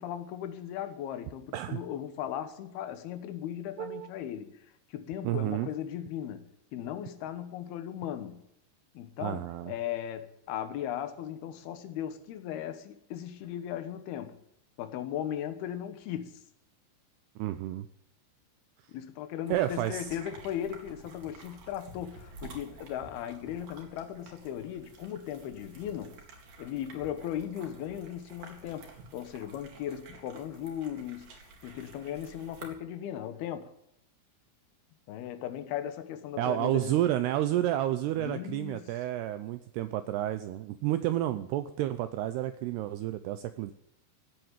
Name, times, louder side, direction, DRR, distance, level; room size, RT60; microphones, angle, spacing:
voice 1, 0.0-6.4 6.7-8.4 8.9-14.4 14.8-16.4 18.9-26.2 26.6-33.7 35.1-37.0 38.2-38.9, left 10 dB, 70° left, 2.7 m, -37 dB
voice 2, 3.8-4.1 5.2-5.7 9.2-9.7 17.4-17.9 19.5-20.2 36.4-43.7, right 13 dB, 85° right, 2.3 m, -30 dB
sound 1, 19.5-32.7, right 3 dB, 50° right, 3.6 m, -51 dB
17.0 x 7.8 x 9.1 m
omnidirectional pair, 5.5 m